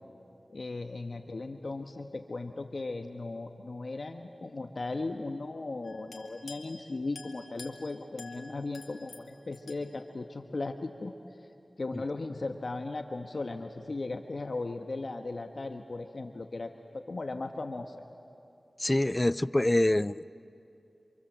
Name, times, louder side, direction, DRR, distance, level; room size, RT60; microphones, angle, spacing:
voice 1, 0.5-11.1 11.8-18.0, left 3 dB, 70° left, 5 dB, 1.3 m, -37 dB
sound 1, 5.8-6.8 7.1-9.8, left 3 dB, 85° left, 2.4 m, -49 dB
voice 2, 18.8-20.3, left 1 dB, 25° left, 17 dB, 0.5 m, -26 dB
29.0 x 26.0 x 7.6 m, 2.7 s
cardioid pair, 40°, 0 cm